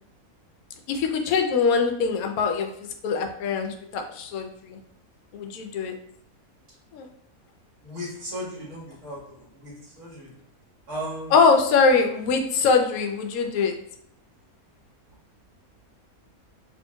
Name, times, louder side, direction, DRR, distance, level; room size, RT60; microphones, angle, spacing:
voice 1, 0.9-2.7 3.0-4.8 5.3-5.9 6.9-7.1 11.3-13.7, left 5 dB, 75° left, 5 dB, 1.0 m, -22 dB
voice 2, 7.9-9.2 9.6-9.7 10.0-10.1 10.9-11.3, equal, 55° right, -5 dB, 1.9 m, -34 dB
4.4 x 2.9 x 2.2 m, 0.70 s
omnidirectional pair, 1.6 m